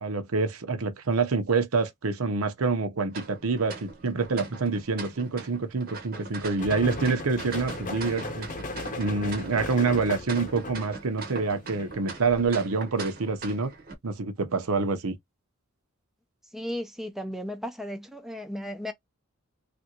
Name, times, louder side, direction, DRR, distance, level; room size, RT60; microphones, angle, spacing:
voice 1, 0.0-8.5 9.0-13.7 14.0-15.1, right 4 dB, 75° right, 0.8 m, -27 dB
sound 1, 3.1-13.9, right 4 dB, 45° right, 0.8 m, -41 dB
sound 2, 6.6-12.0, left 2 dB, 35° left, 0.8 m, -37 dB
voice 2, 16.5-18.9, left 1 dB, ahead, 0.5 m, -35 dB
3.4 x 2.6 x 2.9 m
head